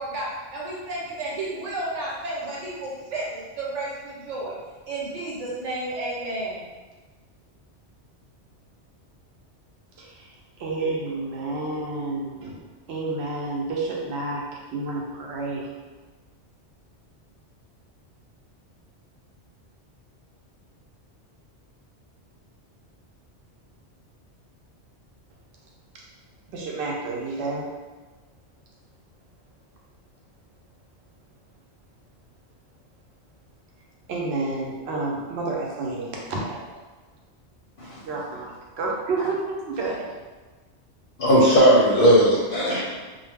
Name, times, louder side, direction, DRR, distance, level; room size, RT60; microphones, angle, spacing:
voice 1, 0.0-4.5 4.9-6.7, right 2 dB, 85° right, -5 dB, 1.1 m, -32 dB
voice 2, 10.0-12.6 12.9-15.7 25.9-26.0 26.5-27.7 34.1-36.6 38.0-38.5 38.8-40.1, right 3 dB, 70° right, -2 dB, 0.8 m, -30 dB
voice 3, 41.2-42.8, equal, 60° left, -6 dB, 0.7 m, -17 dB
2.2 x 2.0 x 3.3 m, 1.3 s
omnidirectional pair, 1.2 m